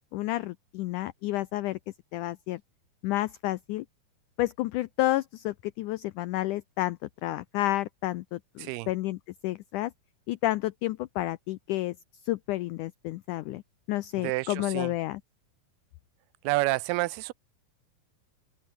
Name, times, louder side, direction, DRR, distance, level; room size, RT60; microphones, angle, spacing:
voice 1, 0.1-1.8 2.1-2.6 3.0-3.9 4.4-9.2 9.4-9.9 10.3-12.0 12.2-13.6 13.9-15.2, left 16 dB, 90° left, 1.7 m, -30 dB
voice 2, 8.6-8.9 14.2-14.9 16.4-17.3, right 21 dB, 90° right, 2.6 m, -29 dB
open air
omnidirectional pair, 4.4 m